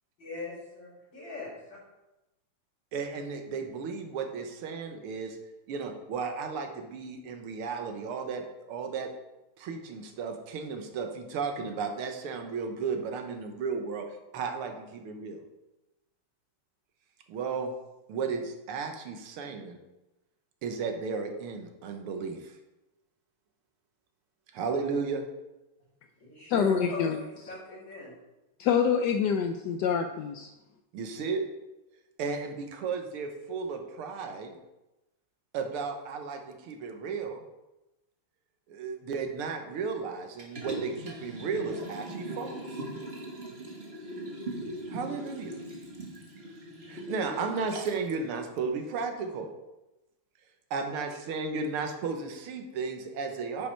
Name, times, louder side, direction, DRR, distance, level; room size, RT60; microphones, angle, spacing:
voice 1, 0.2-1.5 26.2-28.1, left 2 dB, 60° left, -10 dB, 4.4 m, -40 dB
voice 2, 2.9-5.4 5.7-9.1 9.6-14.1 14.3-15.4 17.3-17.7 18.1-19.8 20.6-22.6 24.5-25.2 30.9-31.4 32.2-34.5 35.5-37.4 38.7-42.8 44.9-45.5 46.9-49.5 50.7-53.7, right 5 dB, 85° right, 5 dB, 1.9 m, -34 dB
voice 3, 26.5-27.2 28.6-30.5, left 7 dB, 75° left, 6 dB, 1.0 m, -26 dB
Liquid, 40.4-48.1 48.5-48.6, right 1 dB, 30° right, 1.4 m, -40 dB
10.0 x 5.4 x 4.5 m, 1.0 s
omnidirectional pair, 2.3 m